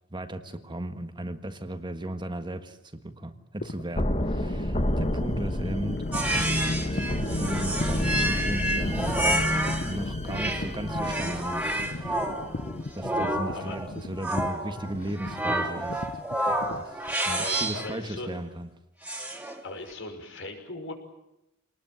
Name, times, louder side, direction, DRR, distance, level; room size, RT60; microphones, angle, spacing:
voice 1, 0.1-6.0 6.9-9.6 9.8-11.7 12.0-12.3 12.9-16.0 16.8-18.7, right 1 dB, 25° right, 8 dB, 1.6 m, -36 dB
sound 1, 3.6-17.7, left 2 dB, 50° left, 0.9 m, -39 dB
sound 2, 4.0-12.8, left 1 dB, 35° left, 2.1 m, -30 dB
Alien Voice, 6.1-9.9 10.3-17.9 19.0-19.6, right 1 dB, 5° right, 3.4 m, -29 dB
voice 2, 17.2-18.4 19.6-20.9, left 2 dB, 65° left, 4 dB, 5.8 m, -38 dB
26.5 x 20.0 x 9.3 m, 0.85 s
head